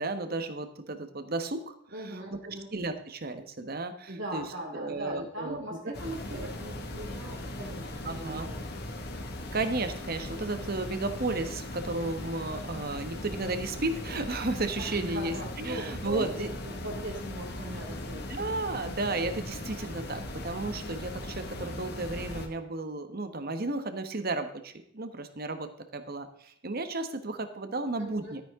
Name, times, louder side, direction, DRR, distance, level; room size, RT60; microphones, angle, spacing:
voice 1, 0.0-1.7 2.4-4.4 4.7-5.8 8.0-8.5 9.5-16.5 18.3-28.4, right 2 dB, 50° right, 9 dB, 1.3 m, -33 dB
voice 2, 1.9-2.7 4.1-8.6 14.8-18.3 28.0-28.3, right 1 dB, 65° right, -2 dB, 2.3 m, -39 dB
sound 1, 5.9-22.5, left 1 dB, 55° left, 1.9 m, -39 dB
12.5 x 10.5 x 3.7 m, 0.67 s
head